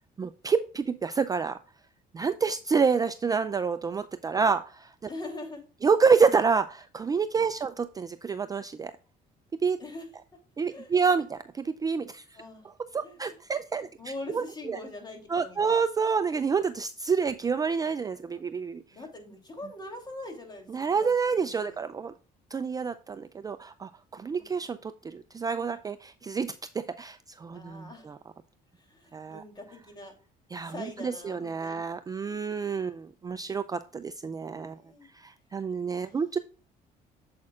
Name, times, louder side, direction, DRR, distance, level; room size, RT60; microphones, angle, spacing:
voice 1, 0.2-1.6 2.1-5.1 5.8-8.9 9.6-9.8 10.6-12.2 12.9-14.8 15.3-18.8 20.7-22.1 22.5-28.2 29.1-29.4 30.5-34.8 35.1-36.4, right 5 dB, 20° right, 11 dB, 0.4 m, -28 dB
voice 2, 5.1-5.6 9.8-10.1 10.7-11.0 12.3-12.7 13.0-13.2 13.8-15.8 18.3-18.4 18.9-21.8 24.3-24.6 27.5-28.1 28.8-30.1 30.6-31.8 34.3-35.1 35.9-36.2, left 2 dB, 25° left, 3 dB, 3.0 m, -43 dB
8.6 x 7.5 x 2.4 m, 0.39 s
cardioid pair, 110°, 17 cm